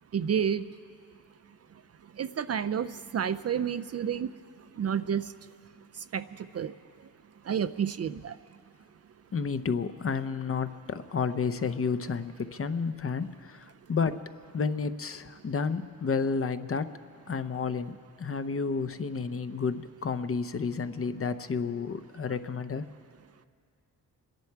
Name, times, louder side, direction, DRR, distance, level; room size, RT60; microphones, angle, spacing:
voice 1, 0.1-0.6 2.2-4.3 4.8-5.2 6.1-6.7 7.5-8.3, right 8 dB, 40° right, 13 dB, 0.4 m, -30 dB
voice 2, 9.3-14.2 14.5-16.9 17.3-22.8, left 5 dB, 35° left, 10 dB, 0.7 m, -31 dB
25.5 x 10.5 x 4.6 m, 2.2 s
cardioid pair, 60°, 37 cm